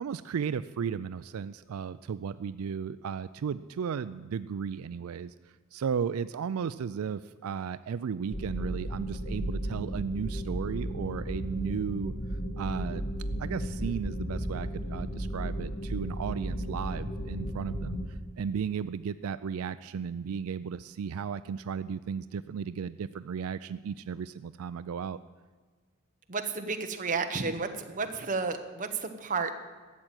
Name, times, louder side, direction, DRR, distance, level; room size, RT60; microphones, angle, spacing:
voice 1, 0.0-5.3 5.7-12.1 12.6-13.0 13.4-25.2, right 7 dB, 80° right, 14 dB, 0.4 m, -35 dB
sound 1, 8.3-18.1, equal, 65° left, 2.2 m, -34 dB
voice 2, 26.3-29.5, right 4 dB, 35° right, 6 dB, 1.0 m, -32 dB
12.5 x 7.6 x 8.9 m, 1.5 s
head